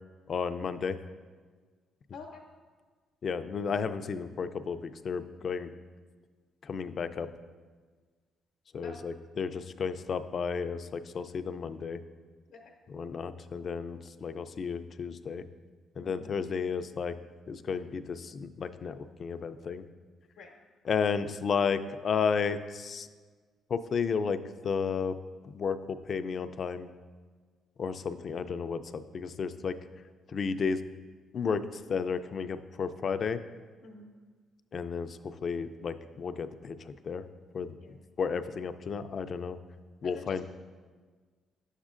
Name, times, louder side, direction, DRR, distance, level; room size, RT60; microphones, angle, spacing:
voice 1, 0.3-1.0 3.2-4.8 5.0-5.7 6.7-7.3 8.7-12.0 12.9-15.4 16.0-17.1 17.5-19.8 20.9-23.1 23.7-24.4 24.6-25.1 25.5-26.9 27.8-29.7 30.3-30.8 31.3-31.6 31.9-33.4 34.7-35.1 35.4-36.8 37.1-37.2 37.5-37.7 38.2-39.6 40.0-40.4, left 6 dB, 50° left, 10 dB, 0.4 m, -32 dB
voice 2, 40.0-40.4, left 4 dB, 90° left, 0 dB, 0.8 m, -47 dB
9.6 x 7.2 x 2.5 m, 1.5 s
cardioid pair, 90°, 0 cm